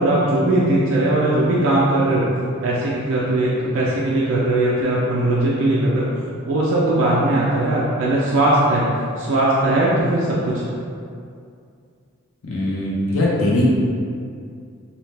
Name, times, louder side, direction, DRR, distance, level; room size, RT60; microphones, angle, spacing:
voice 1, 0.0-2.3 2.6-6.1 6.4-8.9 9.2-10.7, right 1 dB, 65° right, -6 dB, 0.4 m, -19 dB
voice 2, 12.4-13.7, left 1 dB, 80° left, -5 dB, 0.6 m, -20 dB
2.7 x 2.1 x 3.2 m, 2.4 s
head